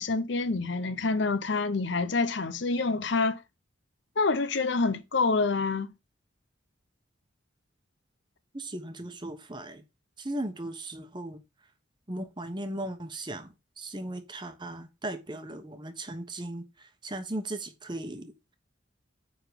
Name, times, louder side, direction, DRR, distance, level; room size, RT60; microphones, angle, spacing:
voice 1, 0.0-3.4 4.2-5.9, left 3 dB, 65° left, 0.7 m, -27 dB
voice 2, 8.5-9.8 10.2-11.4 12.1-13.5 13.8-18.5, right 1 dB, 25° right, 1.1 m, -37 dB
9.4 x 3.9 x 5.1 m
head